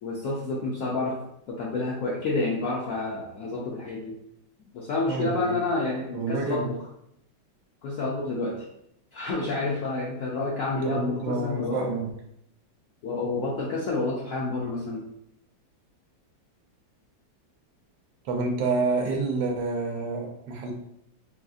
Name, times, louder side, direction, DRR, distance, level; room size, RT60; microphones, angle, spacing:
voice 1, 0.0-1.2 1.5-4.1 4.7-6.8 7.8-8.7 9.1-12.0 13.0-15.0, left 2 dB, 75° left, -5 dB, 0.7 m, -29 dB
voice 2, 5.1-5.6 6.1-6.7 10.8-12.1 18.2-20.7, right 3 dB, 80° right, 1 dB, 1.3 m, -28 dB
3.9 x 2.5 x 2.4 m, 0.74 s
omnidirectional pair, 2.1 m